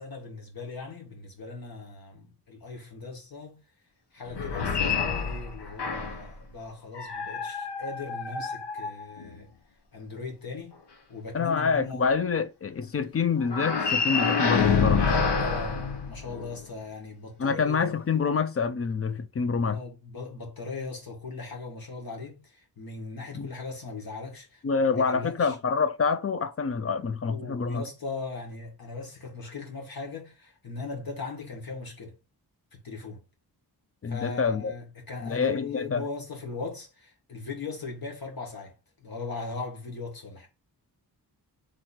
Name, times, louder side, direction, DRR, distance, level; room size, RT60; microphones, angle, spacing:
voice 1, 0.0-3.6 4.1-9.5 9.9-10.8 11.1-12.0 15.4-18.0 19.7-24.6 24.9-25.5 27.3-32.1 32.7-33.2 34.1-38.7 39.0-40.5, left 4 dB, 60° left, 1.8 m, -39 dB
sound 1, 4.3-6.3 6.9-9.4 13.5-16.6, left 5 dB, 85° left, 1.0 m, -27 dB
voice 2, 11.3-15.1 17.4-19.8 23.3-23.5 24.6-27.8 34.0-34.7 35.2-36.0, left 5 dB, 35° left, 0.5 m, -27 dB
3.9 x 3.1 x 4.3 m
wide cardioid pair, 135°, 40 cm